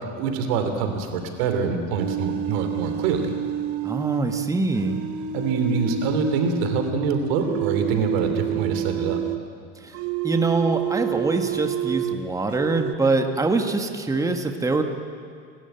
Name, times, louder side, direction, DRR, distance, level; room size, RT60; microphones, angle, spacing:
voice 1, 0.2-3.3 5.3-9.2, right 5 dB, 75° right, 6 dB, 3.1 m, -25 dB
sound 1, 2.0-7.0 7.4-9.4 9.9-12.2 12.5-12.9, right 10 dB, 45° right, 1.1 m, -28 dB
voice 2, 3.8-5.0 9.7-10.0 10.2-14.8, right 3 dB, 10° right, 5 dB, 1.6 m, -24 dB
29.0 x 13.0 x 9.1 m, 2.4 s
supercardioid pair, 105°, 31 cm